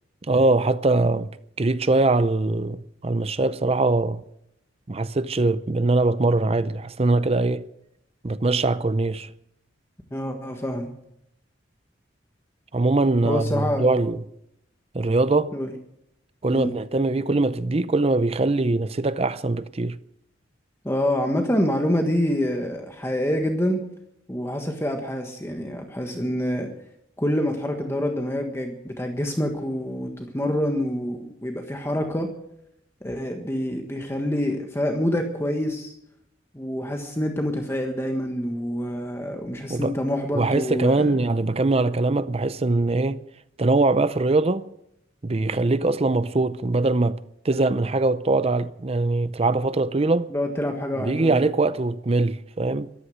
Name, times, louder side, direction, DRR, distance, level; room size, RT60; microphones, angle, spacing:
voice 1, 0.3-1.3 1.6-4.2 4.9-7.7 8.2-9.3 12.7-14.2 14.9-15.5 16.4-20.0 39.7-39.9 40.3-43.2 43.6-44.7 45.2-47.2 47.4-50.3 51.0-52.9, right 2 dB, 35° right, 0.6 m, -22 dB
voice 2, 10.1-10.9 13.2-14.1 15.5-15.7 16.5-16.7 20.8-23.8 24.3-26.7 27.2-32.3 33.0-35.9 36.5-41.1 50.3-51.4, left 1 dB, 15° left, 1.5 m, -26 dB
14.0 x 13.0 x 7.9 m
head